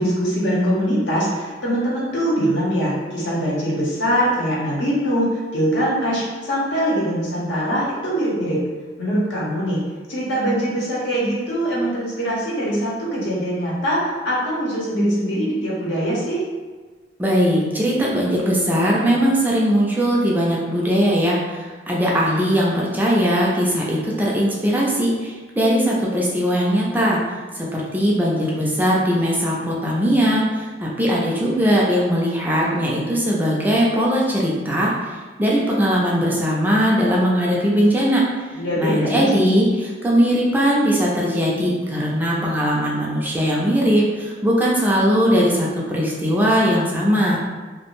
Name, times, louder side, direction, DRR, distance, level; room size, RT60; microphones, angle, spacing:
voice 1, 0.0-8.6 9.0-9.8 10.1-16.4 38.5-39.5, equal, 80° left, -6 dB, 0.8 m, -22 dB
voice 2, 17.2-21.4 21.9-27.2 27.6-34.9 35.4-38.2 38.8-47.4, equal, 10° right, -4 dB, 0.3 m, -19 dB
2.5 x 2.1 x 3.0 m, 1.4 s
head